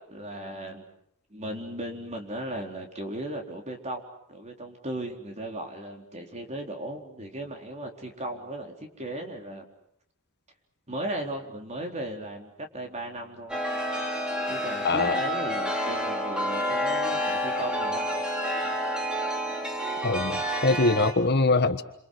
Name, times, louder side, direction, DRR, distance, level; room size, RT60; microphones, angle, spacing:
voice 1, 0.1-0.9 1.3-4.0 4.3-9.6 10.9-13.6 14.5-18.2, right 1 dB, 30° right, 3 dB, 4.1 m, -36 dB
Chime, 13.5-21.1, equal, 5° right, 4.1 m, -29 dB
voice 2, 14.8-15.2 20.0-21.8, left 3 dB, 50° left, 9 dB, 1.4 m, -23 dB
28.5 x 27.0 x 6.5 m, 0.74 s
head